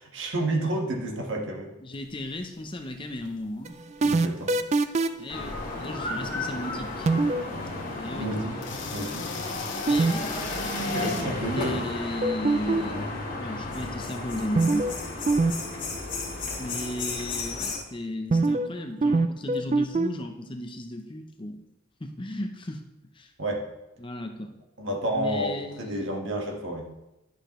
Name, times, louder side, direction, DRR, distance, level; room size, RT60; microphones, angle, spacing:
voice 1, 0.0-1.7 4.0-4.6 8.1-8.6 8.9-9.3 10.9-11.9 23.4-23.6 24.8-26.9, right 1 dB, 65° right, 0 dB, 1.5 m, -30 dB
voice 2, 1.8-3.7 5.2-7.1 8.0-8.3 9.9-10.4 11.5-14.9 16.6-21.6 22.0-22.8 23.1-23.3 24.0-24.6 25.1-26.1, left 1 dB, 25° left, 4 dB, 0.6 m, -35 dB
sound 1, 1.9-11.2, left 6 dB, 60° left, 1.0 m, -42 dB
sound 2, 3.7-5.3 7.1-7.5 9.9-10.1 10.4-10.5 12.2-13.0 14.6-15.0 15.3-15.5 15.8-15.9 18.3-18.7 19.0-20.1, right 3 dB, 30° right, 0.3 m, -22 dB
sound 3, 5.3-17.8, left 2 dB, 40° left, 2.1 m, -33 dB
11.0 x 6.7 x 3.1 m, 0.95 s
head